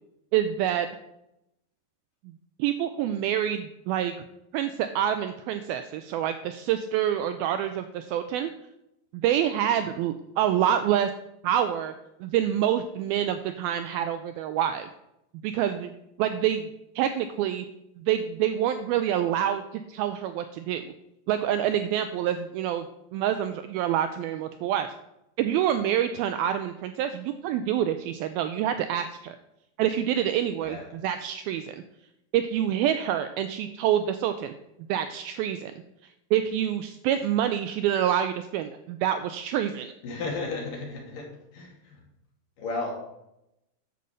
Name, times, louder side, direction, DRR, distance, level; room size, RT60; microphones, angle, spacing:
voice 1, 0.3-0.9 2.6-4.1 4.5-8.5 9.1-11.1 11.4-11.9 12.2-14.9 15.4-15.9 16.2-16.7 17.0-17.7 18.0-20.8 21.3-22.9 23.1-24.9 25.4-29.4 29.8-31.7 32.3-34.5 34.9-35.7 36.3-39.9, right 10 dB, 90° right, 9 dB, 2.1 m, -27 dB
voice 2, 40.0-41.3 41.5-42.0 42.6-42.9, left 3 dB, 55° left, -1 dB, 4.0 m, -33 dB
10.5 x 6.9 x 6.4 m, 0.85 s
omnidirectional pair, 4.9 m